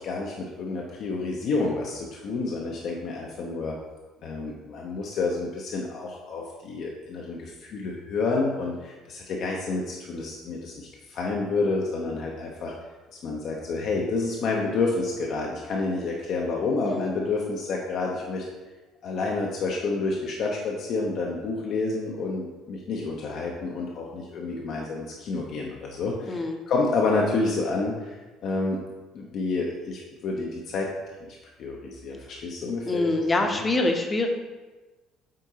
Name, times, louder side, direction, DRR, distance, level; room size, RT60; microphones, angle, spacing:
voice 1, 0.0-3.7 4.2-12.7 13.2-18.4 19.0-28.8 29.1-30.9 31.2-33.6, left 3 dB, 55° left, -1 dB, 0.7 m, -29 dB
voice 2, 16.8-17.1 26.2-26.6 32.8-34.3, left 2 dB, 25° left, 4 dB, 0.8 m, -25 dB
7.5 x 4.5 x 2.9 m, 1.2 s
figure-of-eight pair, 55°, 0 cm